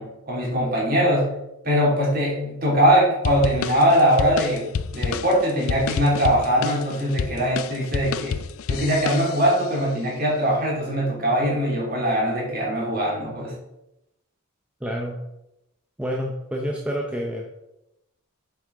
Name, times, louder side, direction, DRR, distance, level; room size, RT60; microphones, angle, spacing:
voice 1, 0.0-1.3 1.6-8.4 8.7-13.5, equal, 40° right, -3 dB, 3.0 m, -21 dB
sound 1, 3.2-9.7, left 6 dB, 75° left, 0.4 m, -29 dB
voice 2, 14.8-15.2 16.0-17.5, equal, 5° right, -1 dB, 0.7 m, -28 dB
8.0 x 5.7 x 5.0 m, 0.88 s
head